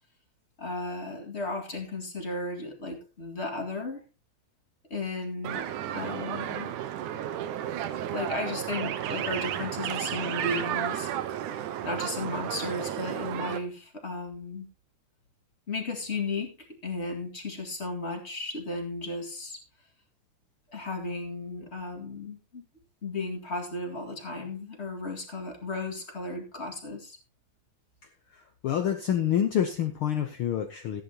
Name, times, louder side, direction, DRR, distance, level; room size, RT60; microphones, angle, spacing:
voice 1, 0.6-4.0 4.9-5.7 5.9-6.8 8.1-11.1 11.8-14.7 15.7-16.6 16.8-19.6 20.7-22.6 23.0-27.2, left 2 dB, 25° left, 1.9 m, -34 dB
sound 1, 5.4-13.6, right 11 dB, 85° right, 2.4 m, -33 dB
voice 2, 28.3-31.0, left 9 dB, 75° left, 1.2 m, -27 dB
15.0 x 10.5 x 2.9 m
omnidirectional pair, 3.5 m